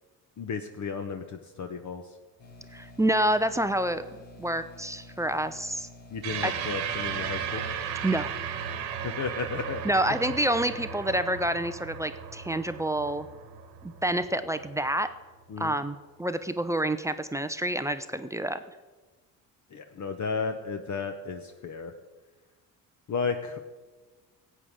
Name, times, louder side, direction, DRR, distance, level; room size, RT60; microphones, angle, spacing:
voice 1, 0.4-2.0 6.1-7.6 9.0-9.8 15.5-15.8 19.7-21.9 23.1-23.6, left 5 dB, 35° left, 6 dB, 0.9 m, -33 dB
sound 1, 2.4-7.6, left 1 dB, 65° left, 2.4 m, -50 dB
voice 2, 2.7-4.0 4.4-5.9 6.4-6.5 8.0-8.3 9.8-13.3 13.8-15.1 15.6-18.6, right 1 dB, 5° right, 10 dB, 0.5 m, -28 dB
sound 2, 6.2-14.9, right 8 dB, 80° right, 1.5 m, -36 dB
18.5 x 8.4 x 3.6 m, 1.3 s
hypercardioid pair, 55°, 49 cm